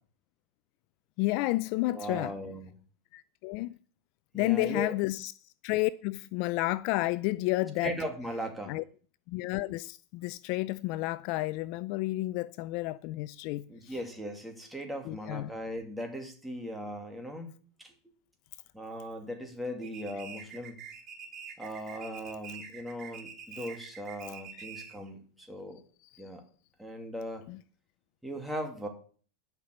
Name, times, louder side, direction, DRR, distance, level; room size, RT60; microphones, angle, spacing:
voice 1, 1.2-2.3 3.1-3.7 4.3-5.3 5.6-7.9 8.7-8.8 9.3-13.9 15.1-15.5 26.1-26.2 27.5-27.6, left 19 dB, 55° left, 0.4 m, -31 dB
voice 2, 1.9-2.7 4.3-4.9 7.8-8.8 13.7-17.5 17.8-17.9 18.7-20.8 21.6-25.8 26.2-26.4 26.8-27.4 28.2-28.9, equal, 5° right, 2.5 m, -38 dB
sound 1, 19.8-25.1, right 7 dB, 30° right, 2.6 m, -46 dB
11.5 x 5.9 x 8.0 m
supercardioid pair, 145°, 0 cm